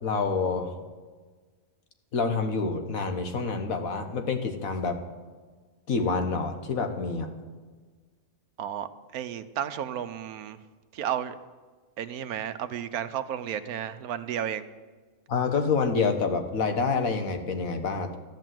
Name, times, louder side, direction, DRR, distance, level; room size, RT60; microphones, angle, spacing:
voice 1, 0.0-0.7 2.1-5.0 5.9-7.3 15.3-18.2, left 4 dB, 70° left, 6 dB, 1.6 m, -27 dB
voice 2, 8.6-10.6 10.9-11.3 12.0-14.6, right 9 dB, 90° right, 12 dB, 1.2 m, -33 dB
13.5 x 10.5 x 7.6 m, 1.4 s
omnidirectional pair, 1.5 m